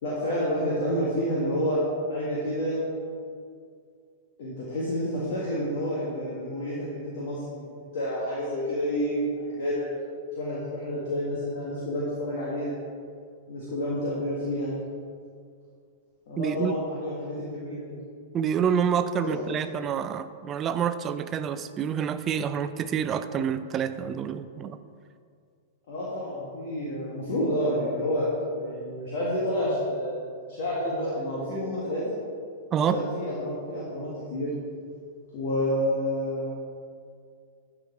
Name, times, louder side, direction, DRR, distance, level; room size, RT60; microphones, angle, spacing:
voice 1, 0.0-2.8 4.4-9.9 10.3-12.8 13.5-14.7 16.3-18.0 19.2-19.4 25.9-32.1 32.9-34.5 35.3-36.5, equal, 55° left, -7 dB, 1.8 m, -29 dB
voice 2, 16.4-16.7 18.3-24.8 32.7-33.0, right 8 dB, 30° right, 12 dB, 0.4 m, -27 dB
11.5 x 5.0 x 4.5 m, 2.2 s
figure-of-eight pair, 100°, 0 cm